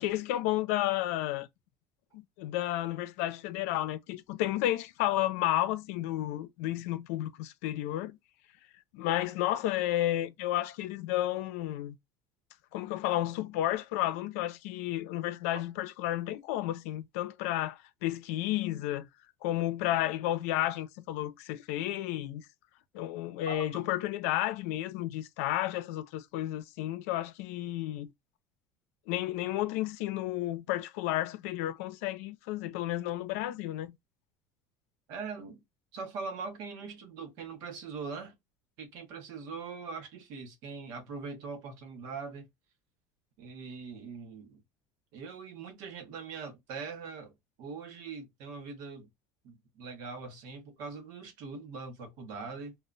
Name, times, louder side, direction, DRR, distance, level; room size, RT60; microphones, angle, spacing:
voice 1, 0.0-1.5 2.1-8.2 8.9-11.9 12.7-19.1 19.4-22.5 22.9-28.1 29.1-33.9, left 14 dB, 85° left, 0.5 m, -32 dB
voice 2, 23.5-23.8 35.1-35.6 35.9-38.3 38.8-42.5 43.4-44.6 45.1-49.1 49.4-52.8, right 4 dB, 55° right, 0.9 m, -42 dB
2.2 x 2.1 x 3.8 m
cardioid pair, 165°, 8 cm